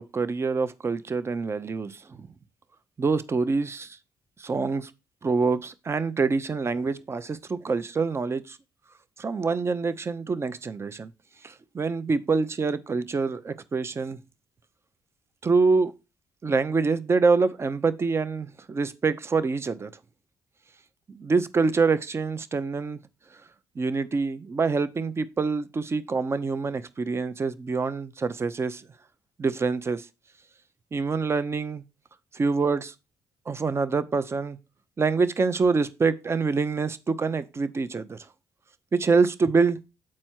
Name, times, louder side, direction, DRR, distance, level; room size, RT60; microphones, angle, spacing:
voice 1, 0.0-2.3 3.0-4.0 4.4-4.9 5.2-8.6 9.2-11.1 11.4-14.2 15.4-15.9 16.4-19.9 21.1-23.0 23.8-28.8 29.4-30.1 30.9-31.8 32.3-32.9 33.5-34.6 35.0-38.2 38.9-39.8, right 4 dB, 35° right, 0.7 m, -26 dB
7.5 x 4.4 x 4.5 m
hypercardioid pair, 55°, 8 cm